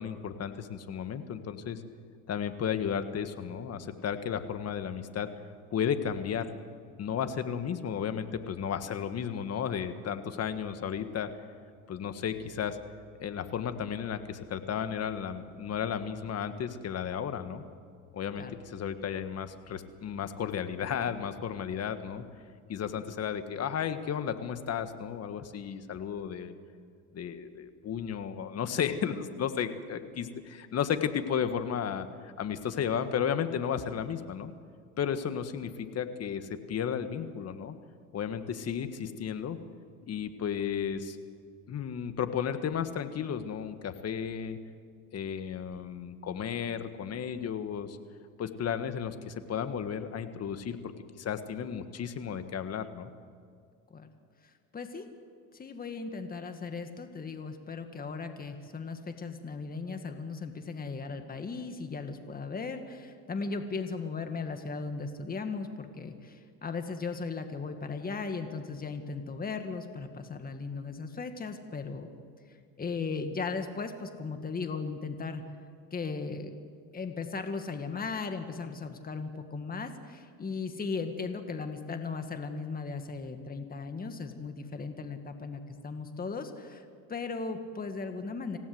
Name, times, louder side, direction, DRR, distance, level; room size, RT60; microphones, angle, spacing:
voice 1, 0.0-1.8 2.3-5.3 5.7-6.5 7.0-11.3 11.9-12.8 13.2-17.6 18.1-22.2 22.7-26.5 27.1-34.5 35.0-37.7 38.1-39.6 40.1-41.2 41.7-44.6 45.1-48.0 48.4-53.1, left 8 dB, 40° left, 9 dB, 1.7 m, -33 dB
voice 2, 54.4-55.1 55.5-72.1 72.8-75.4 75.9-76.6 76.9-88.6, left 4 dB, 20° left, 7 dB, 2.1 m, -37 dB
26.5 x 16.5 x 8.0 m, 2.1 s
supercardioid pair, 105°, 40 cm